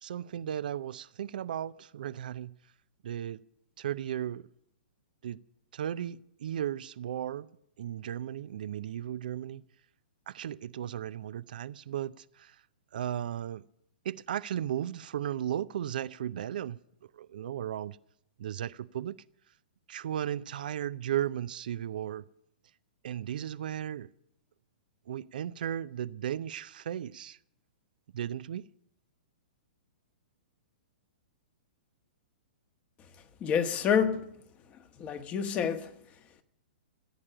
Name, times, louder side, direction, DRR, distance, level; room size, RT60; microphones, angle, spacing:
voice 1, 0.0-2.5 3.0-3.4 3.8-4.5 5.2-5.4 5.7-7.5 7.8-9.6 10.3-12.6 12.9-13.6 14.0-16.8 17.1-18.0 18.4-19.2 19.9-22.2 23.0-24.1 25.1-27.4 28.1-28.7, right 10 dB, 60° right, 0.5 m, -35 dB
voice 2, 33.4-34.3 35.0-35.9, left 7 dB, 25° left, 1.4 m, -28 dB
15.5 x 8.8 x 9.9 m
hypercardioid pair, 115°, 5 cm